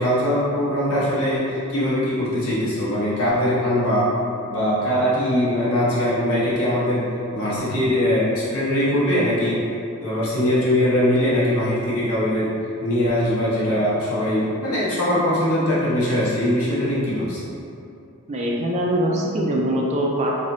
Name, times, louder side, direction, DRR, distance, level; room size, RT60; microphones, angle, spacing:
voice 1, 0.0-4.1 4.5-9.7 10.0-17.4, left 1 dB, 75° left, -9 dB, 1.1 m, -21 dB
voice 2, 18.3-20.4, right 1 dB, 30° right, -2 dB, 0.4 m, -22 dB
3.3 x 2.9 x 2.6 m, 2.6 s
head